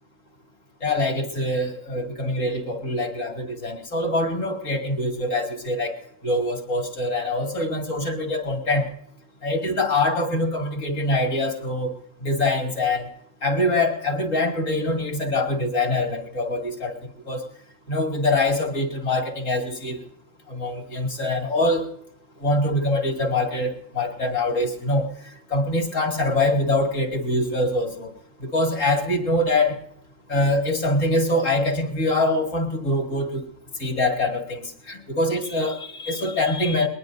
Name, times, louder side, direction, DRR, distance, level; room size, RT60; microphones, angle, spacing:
voice 1, 0.8-6.0 6.2-8.9 9.4-11.9 12.2-13.1 13.4-16.9 17.3-17.4 17.9-20.0 20.5-21.9 22.4-25.1 25.5-28.1 28.5-29.8 30.3-33.4 33.8-36.9, left 2 dB, 80° left, 2 dB, 2.9 m, -24 dB
22.0 x 21.0 x 2.6 m, 0.66 s
omnidirectional pair, 1.3 m